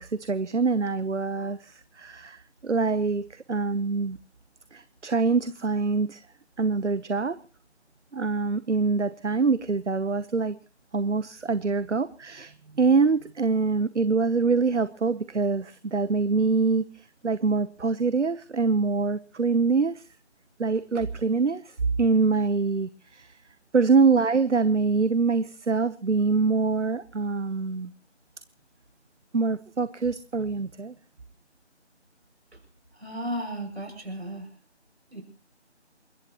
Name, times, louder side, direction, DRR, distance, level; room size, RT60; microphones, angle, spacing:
voice 1, 0.0-4.2 4.7-6.2 6.6-7.4 8.1-10.6 10.9-20.0 20.6-23.4 23.7-27.9 29.3-30.9, right 4 dB, 85° right, 15 dB, 1.0 m, -25 dB
voice 2, 32.9-34.5 35.1-35.2, equal, 65° right, 5 dB, 6.9 m, -34 dB
29.0 x 14.5 x 3.0 m, 0.35 s
figure-of-eight pair, 180°, 35 cm